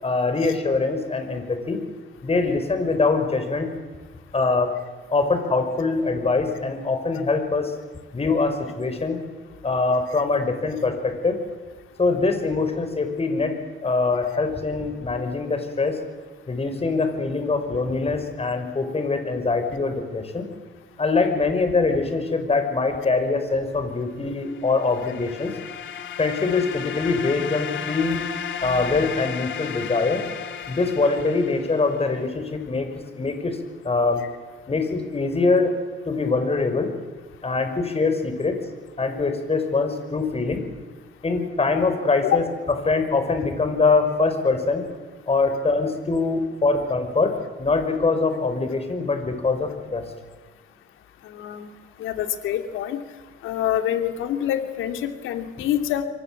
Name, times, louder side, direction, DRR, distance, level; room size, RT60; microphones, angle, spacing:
voice 1, 0.0-1.8 2.2-3.7 4.3-4.7 5.1-7.7 8.1-9.2 9.6-11.4 12.0-13.6 13.8-16.0 16.5-20.5 21.0-25.5 26.2-28.2 28.6-30.2 30.7-32.9 33.1-33.6 33.8-34.2 34.7-35.7 36.1-36.9 37.4-38.6 39.0-40.6 41.2-42.4 42.9-44.9 45.3-50.0, left 3 dB, 30° left, 7 dB, 5.9 m, -23 dB
sound 1, 24.5-32.2, left 8 dB, 70° left, 2.8 m, -34 dB
voice 2, 51.2-51.7 52.0-53.0 53.4-56.0, left 11 dB, 90° left, 7 dB, 2.7 m, -26 dB
28.0 x 23.5 x 7.9 m, 1.4 s
cardioid pair, 90°, 20 cm